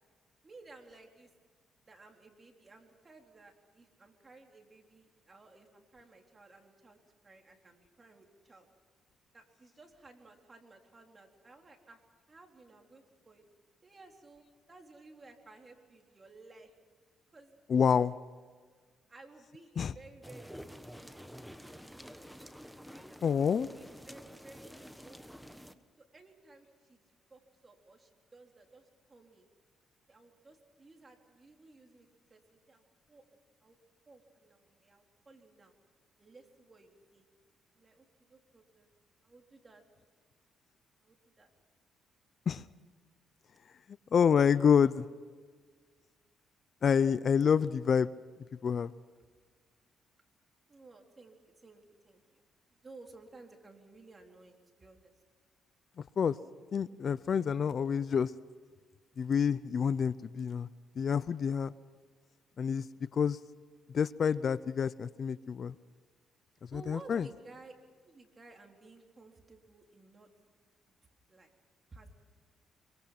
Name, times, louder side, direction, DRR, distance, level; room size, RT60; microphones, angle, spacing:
voice 1, 0.4-1.3 1.8-8.7 9.3-12.0 12.3-13.4 13.8-16.7 17.3-17.6 19.1-21.4 23.8-25.5 26.0-27.0 27.3-29.5 30.1-32.8 33.1-33.8 34.1-35.7 36.2-37.3 37.8-38.9 39.2-39.8 41.0-41.5 50.7-52.4 52.8-55.1 66.7-67.7 68.0-70.3 71.3-71.5 71.9-72.1, right 3 dB, 30° right, 3 dB, 4.0 m, -56 dB
voice 2, 17.7-18.1 19.8-19.9 23.2-23.7 42.5-42.6 44.1-45.1 46.8-48.1 48.6-48.9 56.2-56.4 56.7-58.3 59.2-60.7 61.0-61.7 62.6-62.8 63.1-63.4 63.9-65.7 66.7-67.3, left 7 dB, 50° left, 17 dB, 0.6 m, -27 dB
sound 1, 20.2-25.7, equal, ahead, 1.4 m, -49 dB
26.0 x 23.5 x 6.0 m, 1.5 s
cardioid pair, 90°, 0 cm